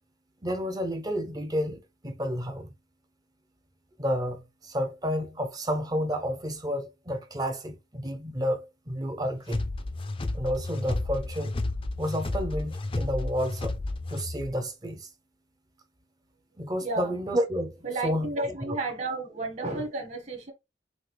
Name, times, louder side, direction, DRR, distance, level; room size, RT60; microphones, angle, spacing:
voice 1, 0.4-2.7 4.0-9.7 10.3-11.5 12.0-13.8 14.1-15.1 16.6-18.3 18.7-18.8, equal, 20° right, 0.7 m, -31 dB
sound 1, 9.5-14.5, left 2 dB, 30° left, 0.5 m, -32 dB
voice 2, 16.8-17.1 17.8-20.5, right 2 dB, 40° right, 1.6 m, -32 dB
6.2 x 2.5 x 3.3 m
head